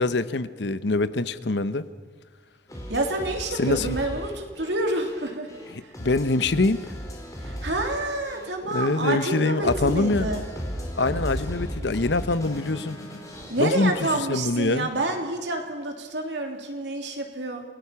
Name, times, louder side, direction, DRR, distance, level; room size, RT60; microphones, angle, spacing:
voice 1, 0.0-1.8 3.5-4.0 5.7-6.9 8.7-10.3 11.0-13.0 13.6-14.9, left 2 dB, 75° left, 13 dB, 0.9 m, -24 dB
sound 1, 2.7-14.6, equal, 20° left, 4.5 m, -36 dB
voice 2, 2.9-5.5 5.8-5.9 7.4-10.4 13.5-17.6, right 2 dB, 80° right, 3 dB, 3.1 m, -28 dB
28.0 x 18.5 x 5.9 m, 1.5 s
head